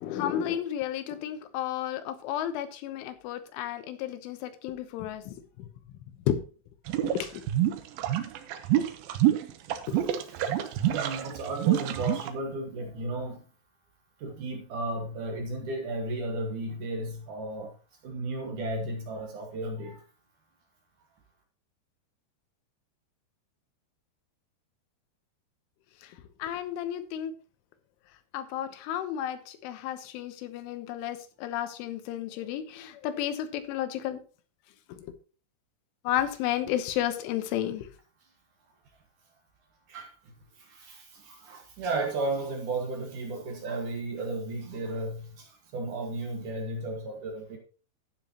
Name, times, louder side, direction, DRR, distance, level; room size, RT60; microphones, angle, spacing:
voice 1, 0.0-5.7 6.3-6.4 7.0-7.4 9.9-10.0 26.0-26.1 26.4-27.3 28.3-34.2 34.9-35.1 36.1-37.9, left 11 dB, 90° left, 3.5 m, -32 dB
sound 1, 6.9-12.3, right 12 dB, 90° right, 2.0 m, -26 dB
voice 2, 10.7-13.5 14.2-17.7 18.0-20.0 39.9-47.6, right 2 dB, 60° right, 2.2 m, -34 dB
12.0 x 9.3 x 2.9 m
omnidirectional pair, 5.5 m